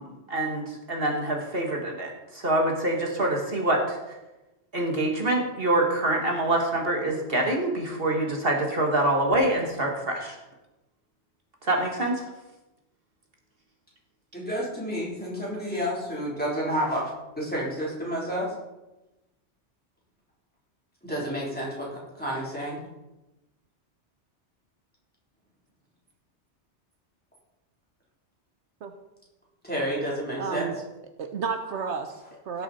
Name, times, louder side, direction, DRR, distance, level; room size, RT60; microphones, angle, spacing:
voice 1, 0.0-4.0 4.7-10.4 11.6-12.2, right 1 dB, 55° right, 0 dB, 1.8 m, -25 dB
voice 2, 14.3-17.0 17.4-18.5 21.0-22.8 29.6-30.7, equal, 10° left, -5 dB, 3.4 m, -30 dB
voice 3, 30.4-30.7 31.2-32.6, right 5 dB, 75° right, 6 dB, 1.1 m, -32 dB
17.0 x 6.6 x 4.2 m, 1.0 s
omnidirectional pair, 1.2 m